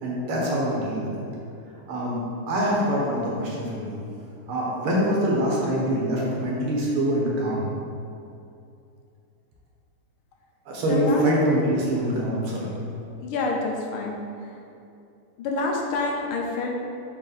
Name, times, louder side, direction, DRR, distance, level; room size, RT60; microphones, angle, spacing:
voice 1, 0.0-1.2 1.9-4.0 4.5-7.7 10.7-12.7, equal, 85° right, -4 dB, 2.1 m, -24 dB
voice 2, 10.9-11.2 13.2-14.5 15.4-16.7, left 3 dB, 80° left, 0 dB, 1.6 m, -28 dB
5.7 x 4.5 x 4.0 m, 2.5 s
omnidirectional pair, 2.3 m